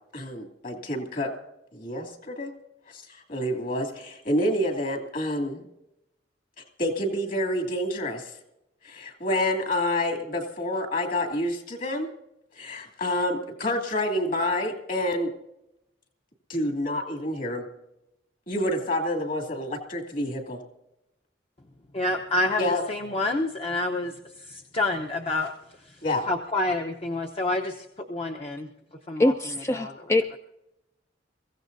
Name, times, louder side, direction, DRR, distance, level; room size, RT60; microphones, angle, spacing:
voice 1, 0.1-1.3 1.7-2.5 2.9-5.6 6.8-8.3 8.8-12.1 12.6-15.3 16.5-17.6 18.5-20.6 22.6-22.8 26.0-26.3, left 1 dB, 50° left, 3 dB, 2.7 m, -28 dB
voice 2, 21.9-24.1 24.4-25.5 26.3-28.7 29.1-29.3 29.7-29.9, left 2 dB, 35° left, 2 dB, 0.9 m, -28 dB
voice 3, 29.2-30.4, left 2 dB, 15° left, 7 dB, 0.4 m, -24 dB
23.5 x 15.5 x 2.7 m, 0.86 s
head